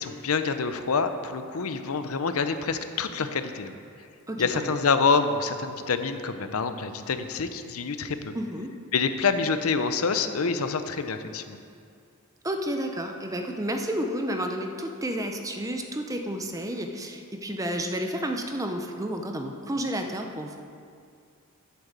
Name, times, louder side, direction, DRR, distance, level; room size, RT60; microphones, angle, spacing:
voice 1, 0.0-3.7 4.4-8.3 8.9-11.6, left 5 dB, 75° left, 9 dB, 0.7 m, -27 dB
voice 2, 4.3-4.7 8.3-8.7 12.4-20.6, equal, 15° right, 4 dB, 0.7 m, -31 dB
8.5 x 7.7 x 7.4 m, 2.3 s
head